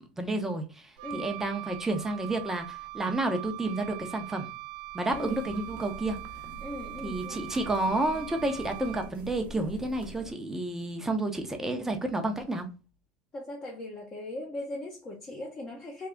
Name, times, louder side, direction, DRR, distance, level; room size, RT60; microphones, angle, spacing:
voice 1, 0.2-4.5 4.9-6.2 7.0-12.7, right 2 dB, 10° right, 0.8 m, -30 dB
voice 2, 1.0-1.3 5.1-5.4 6.6-7.6 13.3-16.1, left 2 dB, 25° left, 0.9 m, -39 dB
Wind instrument woodwind instrument, 1.0-9.3, right 19 dB, 80° right, 0.4 m, -42 dB
sound 1, 5.1-10.3, right 2 dB, 50° right, 0.8 m, -45 dB
3.4 x 2.3 x 3.7 m
supercardioid pair, 120°, 4 cm